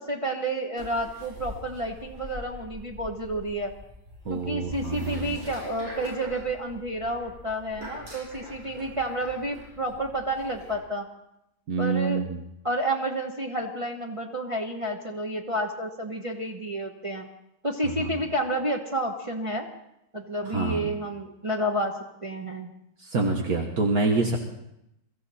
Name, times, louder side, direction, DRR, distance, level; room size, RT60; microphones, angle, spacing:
voice 1, 0.0-3.7 4.3-11.1 11.8-12.3 12.6-17.3 17.6-19.7 20.1-22.7, right 1 dB, 20° right, 0 dB, 1.1 m, -30 dB
sound 1, 0.8-10.7, left 1 dB, 85° right, 8.6 m, -44 dB
voice 2, 4.3-5.4 11.7-12.4 17.8-18.1 20.5-20.9 23.0-24.4, right 3 dB, 65° right, 1 dB, 1.9 m, -27 dB
23.5 x 14.0 x 4.3 m, 0.83 s
omnidirectional pair, 1.7 m